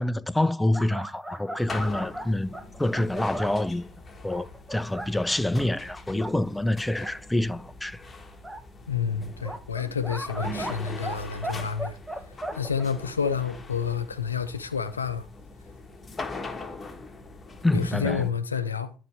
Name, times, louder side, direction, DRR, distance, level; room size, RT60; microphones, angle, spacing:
voice 1, 0.0-2.5 2.8-3.9 4.2-8.0 17.6-18.3, left 1 dB, 10° left, 0.6 m, -26 dB
sound 1, 0.7-3.6 4.3-5.1 5.6-5.7 6.1-6.3 7.0-7.1 8.4-8.6 9.4-11.2 11.4-12.8, right 1 dB, 10° right, 1.1 m, -36 dB
sound 2, 1.6-18.3, left 3 dB, 25° left, 1.6 m, -42 dB
voice 2, 8.9-12.0 12.5-15.3 17.7-18.9, left 6 dB, 90° left, 0.5 m, -29 dB
12.0 x 4.2 x 4.7 m
figure-of-eight pair, 55°, 0 cm